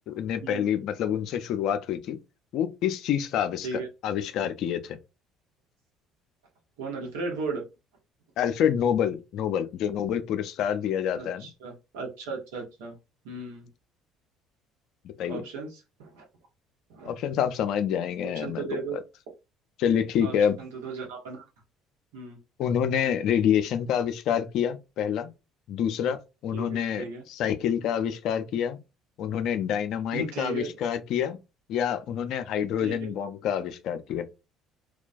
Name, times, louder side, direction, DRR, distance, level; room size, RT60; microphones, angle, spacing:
voice 1, 0.1-2.2 2.5-3.7 4.0-5.0 8.4-11.5 15.0-15.4 17.1-19.0 19.8-20.6 22.6-25.3 25.7-28.8 29.2-31.4 31.7-34.2, left 9 dB, 65° left, 0.4 m, -27 dB
voice 2, 6.8-7.6 11.1-13.0 13.2-13.7 15.3-16.2 16.9-17.1 18.3-19.0 20.2-21.4 22.1-22.4 26.5-27.2 30.1-30.7 32.8-33.1, right 4 dB, 85° right, 0.9 m, -36 dB
2.2 x 2.2 x 2.5 m
hypercardioid pair, 65°, 0 cm